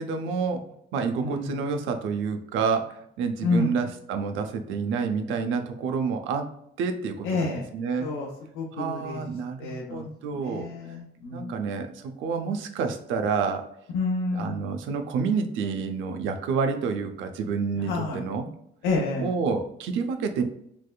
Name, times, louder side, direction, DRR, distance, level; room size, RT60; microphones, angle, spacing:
voice 1, 0.0-6.5 6.8-8.1 8.7-10.7 11.3-13.7 14.3-18.5 19.2-20.4, right 5 dB, 80° right, 6 dB, 0.6 m, -29 dB
voice 2, 7.3-7.6 8.0-8.3 8.6-9.2 9.6-10.0 10.4-11.5 13.9-14.6 17.9-18.2 18.8-19.3, left 3 dB, 85° left, -2 dB, 0.7 m, -28 dB
3.4 x 3.2 x 2.2 m, 0.75 s
cardioid pair, 170°, 20 cm